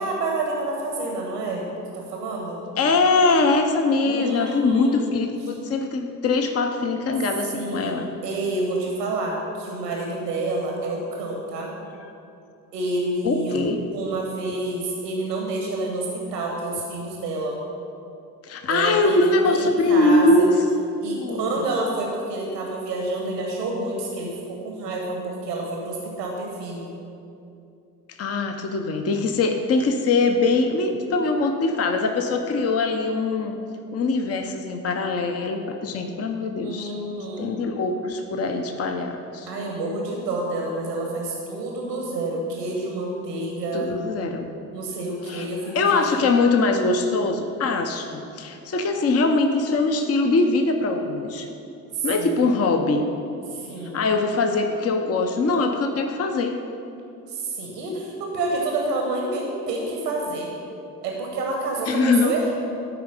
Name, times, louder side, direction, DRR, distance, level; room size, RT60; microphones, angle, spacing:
voice 1, 0.0-1.7 1.9-2.6 4.0-5.0 5.5-5.6 7.5-8.0 8.2-11.7 12.7-13.6 13.9-17.6 18.7-19.2 19.5-20.4 21.0-26.9 36.6-37.5 39.5-43.9 44.7-46.2 51.9-52.4 53.5-54.0 57.3-60.5 61.0-62.5, right 2 dB, 85° right, 0 dB, 1.3 m, -28 dB
voice 2, 2.8-8.1 12.0-12.1 13.2-13.8 18.4-20.5 21.1-21.7 28.1-33.6 33.9-36.9 37.4-39.5 43.7-44.5 45.3-45.5 45.7-51.5 52.0-53.1 53.9-56.6 61.9-62.3, left 3 dB, 30° left, 5 dB, 0.8 m, -22 dB
12.5 x 4.7 x 5.2 m, 2.6 s
hypercardioid pair, 55°, 47 cm